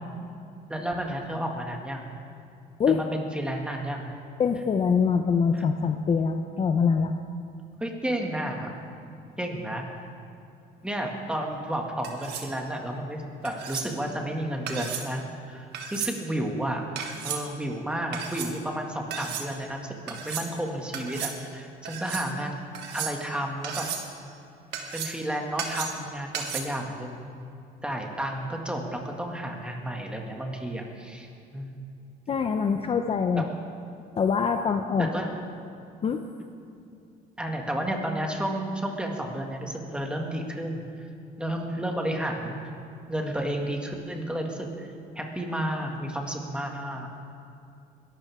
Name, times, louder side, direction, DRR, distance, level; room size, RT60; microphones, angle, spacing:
voice 1, 0.7-2.1 2.9-4.1 5.5-5.6 7.8-8.7 9.4-9.8 10.8-15.6 15.9-16.8 17.2-22.5 22.9-23.9 24.9-27.3 27.8-31.8 33.4-33.6 35.1-35.4 37.4-41.1 41.4-42.6 43.1-44.9 45.2-47.1, right 1 dB, 5° right, 1 dB, 2.1 m, -32 dB
voice 2, 4.4-7.1 32.3-33.4 34.2-35.1 36.0-36.2, left 6 dB, 35° left, 6 dB, 0.7 m, -24 dB
sound 1, 12.0-12.5 13.5-13.9 14.7-15.1 15.7-16.2 17.0-17.4 18.1-18.5 19.1-19.5 20.1-20.5 20.9-21.4 21.9-22.3 22.7-23.3 23.6-24.1 24.7-25.2 25.6-26.0 26.3-26.6, right 7 dB, 80° right, 1.6 m, -34 dB
21.5 x 12.5 x 3.7 m, 2.6 s
cardioid pair, 110°, 17 cm